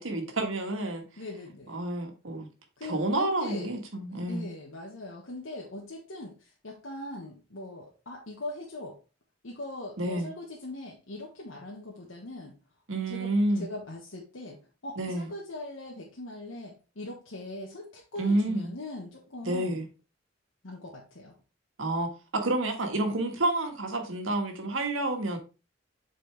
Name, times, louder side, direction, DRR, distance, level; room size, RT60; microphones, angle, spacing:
voice 1, 0.0-1.0 1.7-2.5 2.8-4.5 10.0-10.3 12.9-13.7 15.0-15.3 18.2-18.7 19.4-19.9 21.8-25.4, right 2 dB, 90° right, 1.5 m, -29 dB
voice 2, 1.2-1.7 2.8-3.7 4.3-9.0 9.4-12.6 12.9-19.8 20.6-21.3, left 2 dB, 85° left, 1.3 m, -41 dB
7.9 x 4.4 x 3.4 m
head